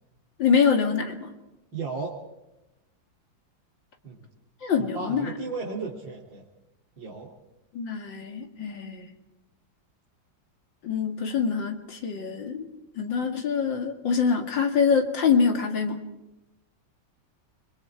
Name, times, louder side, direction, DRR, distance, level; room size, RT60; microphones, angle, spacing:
voice 1, 0.4-1.3 4.6-5.3 7.7-9.1 10.8-12.7 13.0-16.0, left 6 dB, 80° left, 4 dB, 2.9 m, -25 dB
voice 2, 1.7-2.1 4.0-4.3 4.8-6.5 7.0-7.3, right 4 dB, 80° right, -4 dB, 3.6 m, -34 dB
29.5 x 22.5 x 4.7 m, 0.95 s
omnidirectional pair, 2.0 m